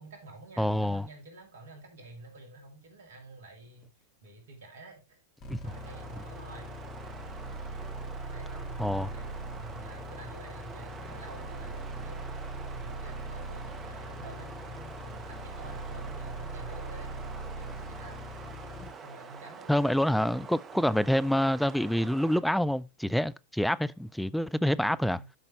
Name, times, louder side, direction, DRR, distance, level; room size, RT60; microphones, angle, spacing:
voice 1, 0.0-5.2 5.6-6.7 8.0-12.2 12.7-17.1 17.6-18.2 19.0-20.5 20.7-21.1 24.8-25.3, right 2 dB, 60° right, 2.1 m, -49 dB
voice 2, 0.6-1.0 5.5-5.6 8.8-9.1 18.8-18.9 19.7-25.2, equal, ahead, 0.3 m, -27 dB
sound 1, 5.4-18.9, right 1 dB, 30° left, 1.8 m, -41 dB
sound 2, 5.6-22.4, right 5 dB, 25° right, 1.0 m, -46 dB
11.5 x 5.4 x 3.0 m
figure-of-eight pair, 90°, 0 cm